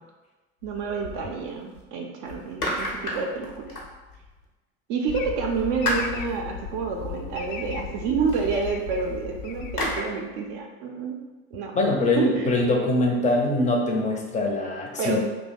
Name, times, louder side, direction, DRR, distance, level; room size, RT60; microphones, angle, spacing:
sound 1, 0.6-1.8 2.3-4.4 5.1-10.0, left 1 dB, 85° left, 0.9 m, -34 dB
voice 1, 0.6-3.7 4.9-11.2 11.5-11.7 12.2-12.5 15.0-15.2, right 5 dB, 45° right, 1 dB, 0.5 m, -29 dB
sound 2, 5.1-10.5, left 7 dB, 65° left, 0.5 m, -37 dB
voice 2, 11.7-15.2, left 2 dB, 15° left, 0 dB, 0.6 m, -23 dB
2.8 x 2.2 x 4.1 m, 1.2 s
figure-of-eight pair, 70°, 43 cm